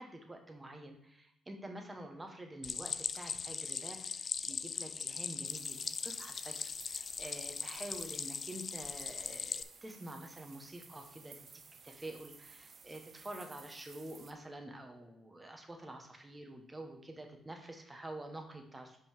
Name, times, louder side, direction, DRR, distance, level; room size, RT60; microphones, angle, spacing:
voice 1, 0.0-11.4 11.8-19.0, right 1 dB, 15° right, 4 dB, 1.2 m, -48 dB
Stream, 2.6-9.6, left 6 dB, 45° left, 0.4 m, -40 dB
sound 1, 5.4-14.3, right 5 dB, 45° right, 0.7 m, -56 dB
5.4 x 5.3 x 4.5 m, 0.83 s
cardioid pair, 90°, 0 cm